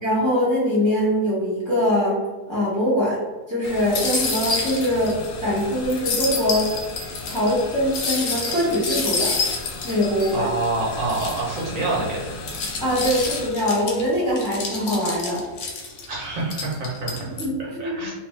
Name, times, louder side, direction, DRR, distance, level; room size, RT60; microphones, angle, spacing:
voice 1, 0.0-2.2 2.5-3.2 3.5-6.7 7.3-9.4 9.8-10.5 12.8-15.4 17.4-17.5 17.8-17.9, equal, 20° left, -8 dB, 0.8 m, -22 dB
sound 1, 3.6-13.5, left 2 dB, 70° left, 1.0 m, -37 dB
sound 2, 3.9-5.3 5.6-5.7 5.9-10.7 11.1-11.6 12.2-16.1 16.5-17.5, left 4 dB, 90° left, 1.2 m, -28 dB
voice 2, 10.3-12.4 16.1-18.1, right 2 dB, 65° right, -5 dB, 1.0 m, -27 dB
2.7 x 2.2 x 3.1 m, 1.3 s
omnidirectional pair, 1.7 m